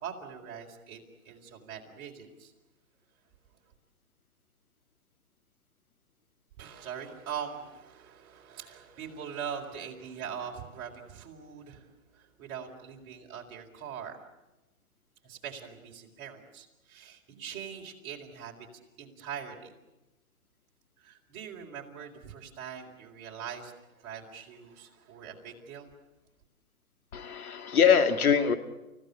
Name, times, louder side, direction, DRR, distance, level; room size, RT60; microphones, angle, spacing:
voice 1, 0.0-2.5 6.6-14.2 15.2-18.7 19.0-19.7 21.0-25.9, right 7 dB, 30° right, 0 dB, 4.2 m, -42 dB
voice 2, 27.1-28.5, left 7 dB, 75° left, 8 dB, 2.2 m, -23 dB
29.5 x 16.0 x 9.9 m, 1.0 s
hypercardioid pair, 145°, 43 cm